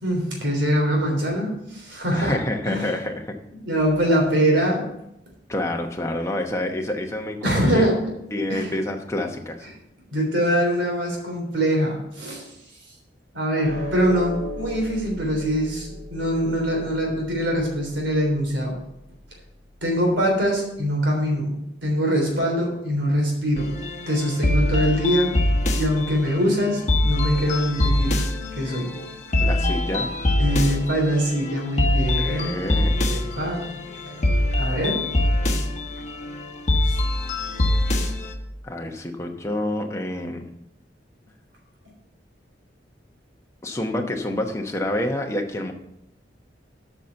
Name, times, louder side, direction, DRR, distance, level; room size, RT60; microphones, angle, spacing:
voice 1, 0.0-2.4 2.7-2.9 3.5-4.8 7.4-8.0 8.5-8.7 10.1-12.5 13.3-18.8 19.8-23.7 24.1-25.4 25.8-28.2 28.5-28.9 30.4-32.5 32.9-35.0 36.8-37.0, equal, 85° right, 0 dB, 3.4 m, -23 dB
voice 2, 2.1-3.3 5.5-7.8 8.3-9.7 29.4-30.2 32.2-33.0 38.6-40.4 43.6-45.7, left 1 dB, 15° left, 2 dB, 1.0 m, -28 dB
sound 1, 13.6-20.2, equal, 60° right, 2.9 m, -38 dB
sound 2, 23.6-38.3, left 1 dB, 40° left, 1.1 m, -24 dB
8.2 x 5.9 x 6.9 m, 0.80 s
head